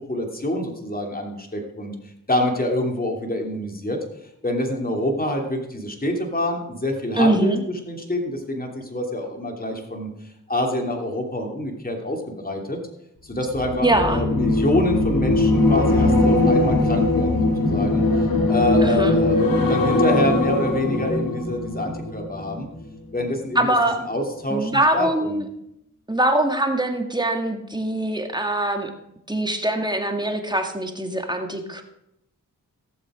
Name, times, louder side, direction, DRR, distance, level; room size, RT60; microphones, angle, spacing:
voice 1, 0.1-1.9 2.3-4.0 4.4-7.5 7.8-10.1 10.5-12.8 13.2-22.7 23.1-23.7 24.0-25.4, left 1 dB, 25° left, 2 dB, 2.9 m, -26 dB
voice 2, 7.2-7.6 13.8-14.2 18.8-19.1 23.6-24.0 24.5-25.5 26.1-28.9 29.3-31.8, right 1 dB, 10° right, 5 dB, 2.0 m, -22 dB
sound 1, 13.5-22.9 23.2-23.5, left 2 dB, 80° left, 1.9 m, -20 dB
17.0 x 7.4 x 5.0 m, 0.80 s
cardioid pair, 45°, 34 cm